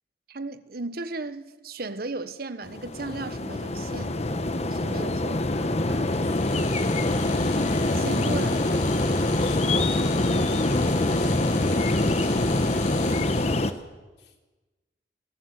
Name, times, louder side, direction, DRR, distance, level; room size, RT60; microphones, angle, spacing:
voice 1, 0.3-4.2 4.7-5.5 7.9-8.7, right 3 dB, 60° right, 1.2 m, -36 dB
sound 1, 2.6-13.7, left 2 dB, 40° left, 1.1 m, -25 dB
voice 2, 5.5-6.5 8.7-11.9 12.7-14.3, left 2 dB, 70° left, 3.4 m, -45 dB
sound 2, 6.2-13.7, left 2 dB, 85° left, 4.2 m, -35 dB
27.0 x 16.5 x 8.1 m
head